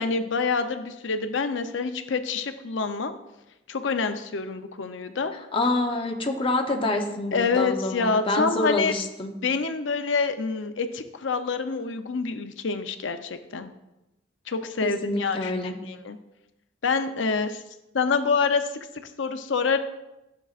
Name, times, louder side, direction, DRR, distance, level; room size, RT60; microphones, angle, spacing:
voice 1, 0.0-3.1 3.7-5.3 7.3-8.9 9.4-13.7 14.5-15.5 15.8-16.2 16.8-17.6 17.9-19.8, left 4 dB, 85° left, 8 dB, 0.6 m, -26 dB
voice 2, 5.3-9.3 14.8-15.7, left 2 dB, 30° left, 3 dB, 0.8 m, -27 dB
11.5 x 7.1 x 2.5 m, 0.95 s
head